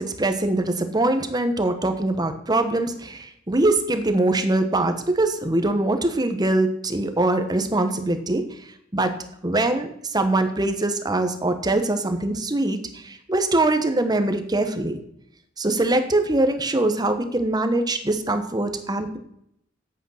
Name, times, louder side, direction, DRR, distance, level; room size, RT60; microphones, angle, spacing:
voice 1, 0.0-9.1 9.4-15.0 15.6-19.2, right 2 dB, 20° right, 7 dB, 1.1 m, -23 dB
8.6 x 8.1 x 5.7 m, 0.72 s
head